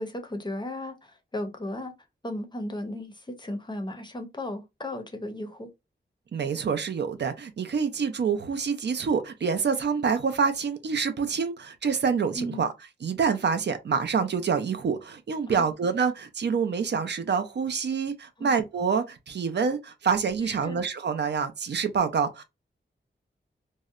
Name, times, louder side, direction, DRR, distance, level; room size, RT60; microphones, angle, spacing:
voice 1, 0.0-1.9 2.2-5.7 12.3-12.7 15.5-15.6 18.4-18.6 20.4-20.8, left 1 dB, 25° left, 0.5 m, -35 dB
voice 2, 6.3-12.7 13.0-22.4, right 6 dB, 65° right, 0.5 m, -27 dB
2.7 x 2.1 x 2.3 m
wide cardioid pair, 125°, 19 cm